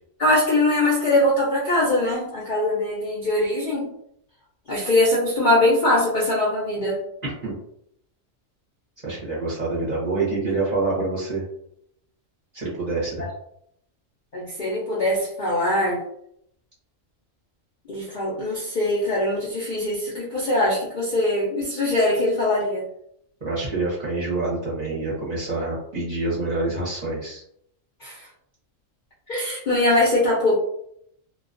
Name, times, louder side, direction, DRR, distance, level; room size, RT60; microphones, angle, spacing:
voice 1, 0.2-3.9 4.7-7.0 14.3-16.0 17.9-22.9 28.0-28.3 29.3-30.6, left 1 dB, 55° left, -6 dB, 0.5 m, -22 dB
voice 2, 7.2-7.6 9.0-11.4 12.5-13.3 23.4-27.4, right 3 dB, 40° right, -7 dB, 0.7 m, -26 dB
2.2 x 2.2 x 2.5 m, 0.72 s
omnidirectional pair, 1.4 m